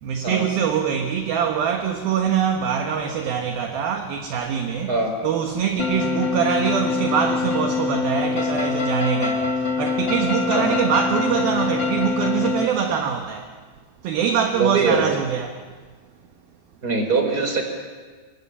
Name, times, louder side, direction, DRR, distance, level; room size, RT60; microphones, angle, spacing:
voice 1, 0.0-4.9 5.2-13.5 14.0-15.7, right 8 dB, 65° right, 2.8 m, -24 dB
sound 1, 5.8-12.6, left 5 dB, 40° left, 1.7 m, -24 dB
voice 2, 14.5-15.1 16.8-17.6, right 4 dB, 20° right, 4.6 m, -22 dB
29.0 x 25.0 x 7.3 m
omnidirectional pair, 5.2 m